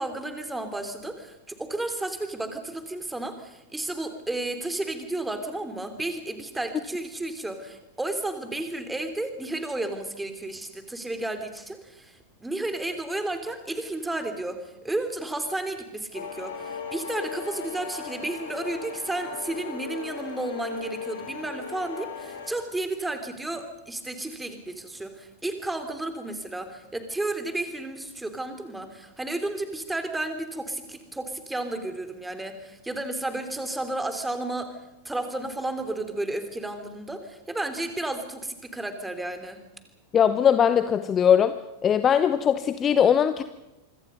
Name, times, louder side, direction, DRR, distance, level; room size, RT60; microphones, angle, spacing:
voice 1, 0.0-34.7 35.0-39.6, right 2 dB, 5° right, 8 dB, 3.2 m, -32 dB
sound 1, 16.1-22.5, left 6 dB, 65° left, 6.7 m, -37 dB
voice 2, 40.1-41.5 41.8-43.4, left 8 dB, 25° left, 12 dB, 0.9 m, -20 dB
26.0 x 24.5 x 5.5 m, 0.94 s
figure-of-eight pair, 90°, 0 cm